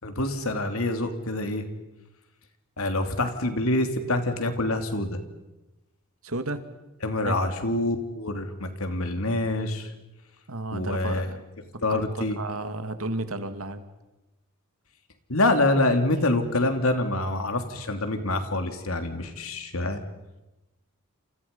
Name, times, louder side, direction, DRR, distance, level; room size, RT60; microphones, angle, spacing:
voice 1, 0.0-1.7 2.8-5.2 7.0-9.9 10.7-11.3 11.8-12.4 15.3-20.0, left 2 dB, 75° left, 6 dB, 3.2 m, -26 dB
voice 2, 6.2-6.6 7.3-7.4 10.5-11.4 11.9-13.8, right 2 dB, 75° right, 9 dB, 2.3 m, -33 dB
29.0 x 28.0 x 5.5 m, 1.0 s
head